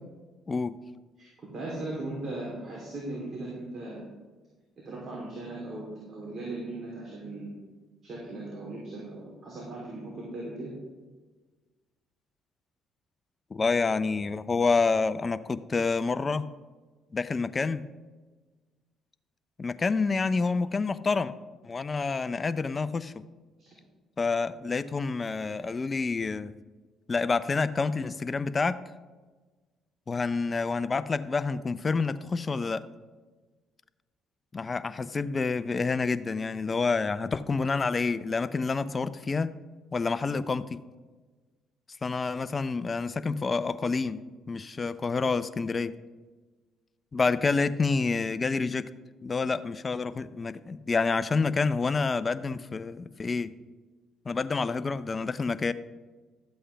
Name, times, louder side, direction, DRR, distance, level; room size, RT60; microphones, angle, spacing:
voice 1, 1.5-4.0 4.8-7.6 8.0-10.7 23.6-23.7, right 2 dB, 45° right, -5 dB, 3.1 m, -38 dB
voice 2, 13.5-16.4 17.1-17.8 19.6-21.3 21.6-23.1 24.2-26.5 27.1-28.8 30.1-32.8 34.5-39.5 39.9-40.8 42.0-44.2 44.5-45.9 47.1-48.9 49.2-53.5 54.3-55.7, left 4 dB, 30° left, 13 dB, 0.5 m, -28 dB
12.5 x 7.9 x 3.4 m, 1.3 s
supercardioid pair, 80°, 0 cm